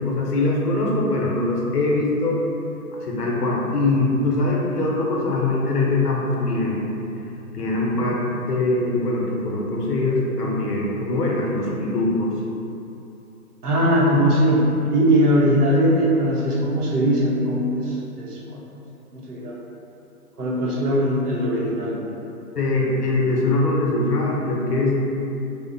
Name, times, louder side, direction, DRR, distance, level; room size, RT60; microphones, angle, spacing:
voice 1, 0.0-2.4 3.0-6.9 7.5-12.4 22.6-25.0, left 2 dB, 85° left, -3 dB, 0.7 m, -22 dB
voice 2, 13.6-18.6 19.1-19.5 20.4-22.0, equal, 75° right, -4 dB, 0.8 m, -20 dB
2.8 x 2.0 x 2.5 m, 2.8 s
hypercardioid pair, 170°, 46 cm